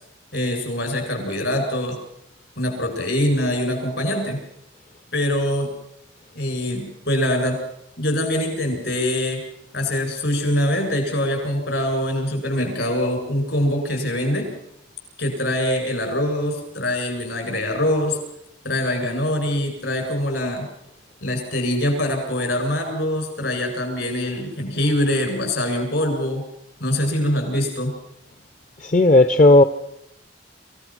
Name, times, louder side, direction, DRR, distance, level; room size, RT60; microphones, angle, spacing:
voice 1, 0.3-2.0 2.6-4.4 5.1-5.7 6.3-7.6 8.0-9.4 9.7-14.5 15.2-18.2 18.6-20.7 21.2-26.4 26.8-27.9, left 1 dB, 70° left, 3 dB, 7.6 m, -23 dB
voice 2, 28.8-29.6, left 2 dB, 40° left, 11 dB, 0.7 m, -13 dB
26.5 x 16.5 x 6.1 m, 0.77 s
head